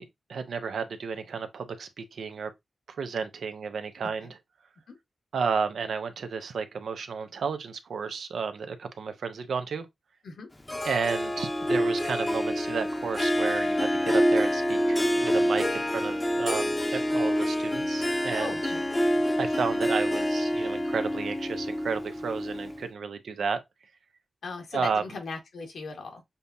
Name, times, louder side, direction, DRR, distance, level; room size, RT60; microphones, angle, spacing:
voice 1, 0.0-2.5 2.9-4.3 5.3-9.9 10.8-18.7 19.4-23.6 24.7-25.0, right 5 dB, 80° right, 0.6 m, -32 dB
Harp, 10.7-22.9, equal, 20° left, 0.7 m, -27 dB
voice 2, 18.4-18.9 24.4-26.2, left 3 dB, 85° left, 1.5 m, -38 dB
6.8 x 2.3 x 2.7 m
cardioid pair, 55°, 0 cm